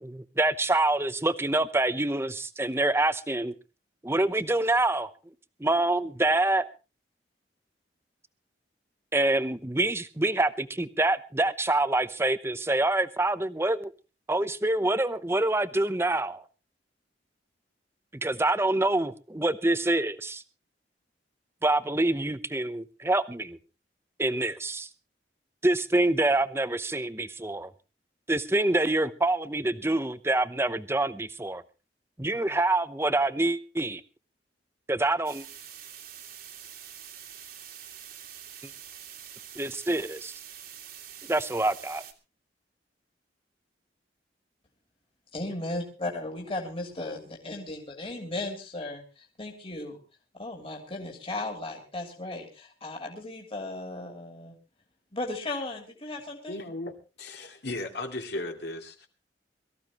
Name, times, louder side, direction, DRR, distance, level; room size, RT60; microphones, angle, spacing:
voice 1, 0.0-3.5 4.0-5.1 5.6-6.7 9.1-13.9 14.3-16.4 18.1-20.4 21.6-23.6 24.2-24.9 25.6-27.7 28.3-31.6 32.2-34.0 34.9-35.4 39.6-40.3 41.3-42.0, right 2 dB, 15° right, 0.8 m, -26 dB
sound 1, 35.2-42.1, right 9 dB, 55° right, 2.2 m, -45 dB
voice 2, 45.3-50.0 50.3-54.5 55.1-56.6, left 2 dB, 30° left, 3.0 m, -36 dB
voice 3, 56.5-59.1, left 2 dB, 65° left, 2.6 m, -36 dB
23.0 x 14.5 x 3.0 m
head